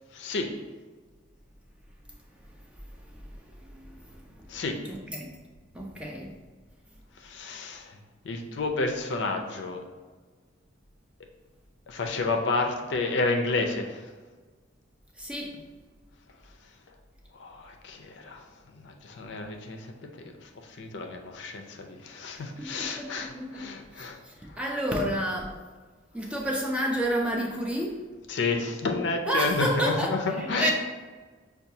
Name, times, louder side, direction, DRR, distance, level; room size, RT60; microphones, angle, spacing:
voice 1, 0.1-0.6 4.5-4.8 7.2-8.0 8.2-9.8 11.9-14.1 17.3-19.9 20.2-24.2 24.5-24.6 28.3-30.7, left 3 dB, 65° left, 3 dB, 0.4 m, -30 dB
voice 2, 3.6-4.4 4.9-5.4 5.7-6.4 15.2-15.6 22.3-25.6 26.1-28.0 29.3-30.7, right 1 dB, 5° right, -1 dB, 0.4 m, -31 dB
5.6 x 2.3 x 2.7 m, 1.4 s
head